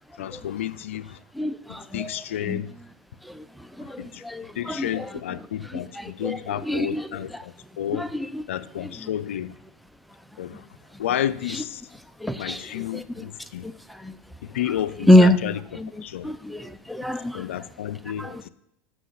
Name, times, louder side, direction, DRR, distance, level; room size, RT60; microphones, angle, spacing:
voice 1, 0.2-1.2 1.7-2.7 3.8-4.2 4.6-8.0 8.5-9.5 10.4-10.7 11.0-11.8 12.4-13.7 14.4-15.6 16.0-16.3 17.0-18.5, left 11 dB, 80° left, 0.4 m, -31 dB
voice 2, 1.3-2.1 2.4-2.6 3.2-5.1 6.0-7.4 7.9-8.4 9.0-9.1 10.5-10.6 11.5-11.6 12.2-13.2 13.6-14.2 15.1-15.4 15.8-15.9 16.2-17.5 18.2-18.4, left 1 dB, ahead, 0.5 m, -25 dB
8.0 x 6.2 x 5.8 m
hypercardioid pair, 105°, 7 cm